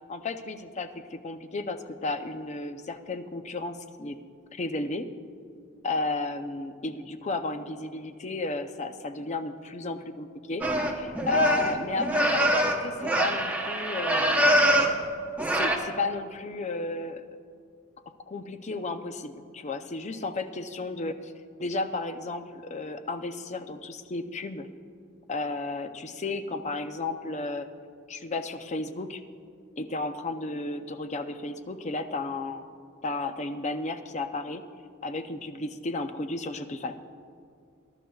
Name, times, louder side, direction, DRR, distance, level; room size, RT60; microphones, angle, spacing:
voice 1, 0.1-4.2 4.5-5.1 5.8-14.5 15.6-17.2 18.3-21.3 21.6-24.7 25.3-27.7 28.1-29.2 29.8-32.7 33.0-34.6 35.0-36.9, left 2 dB, 35° left, 8 dB, 0.5 m, -33 dB
sound 1, 10.6-15.0 15.4-15.8, right 1 dB, 10° right, 0.8 m, -24 dB
21.0 x 11.5 x 2.3 m, 2.3 s
head